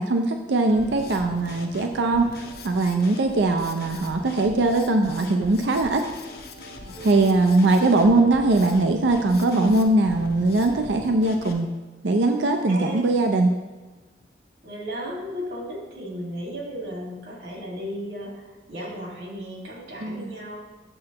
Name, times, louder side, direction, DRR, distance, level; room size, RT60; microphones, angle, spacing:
voice 1, 0.0-6.0 7.0-11.7 12.0-13.5 20.0-20.3, right 2 dB, 90° right, 5 dB, 0.5 m, -21 dB
Drum kit, 0.7-11.5, left 2 dB, 60° left, 0.8 m, -42 dB
voice 2, 6.9-7.4 12.7-13.0 14.6-20.6, equal, 70° right, -2 dB, 1.9 m, -35 dB
7.7 x 7.4 x 2.9 m, 1.2 s
head